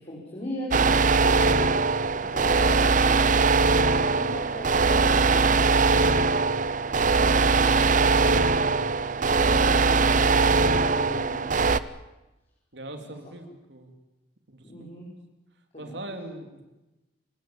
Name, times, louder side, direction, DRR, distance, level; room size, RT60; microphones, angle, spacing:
voice 1, 0.0-3.2 3.7-5.8 7.8-9.7 10.5-11.7 14.6-15.1 15.7-15.9, left 1 dB, 35° left, -4 dB, 5.1 m, -39 dB
sound 1, 0.7-11.8, right 4 dB, 45° right, 0.7 m, -21 dB
voice 2, 12.7-14.0 14.5-14.9 15.8-16.6, right 1 dB, 65° right, 6 dB, 3.4 m, -40 dB
28.0 x 16.5 x 8.8 m, 1.0 s
head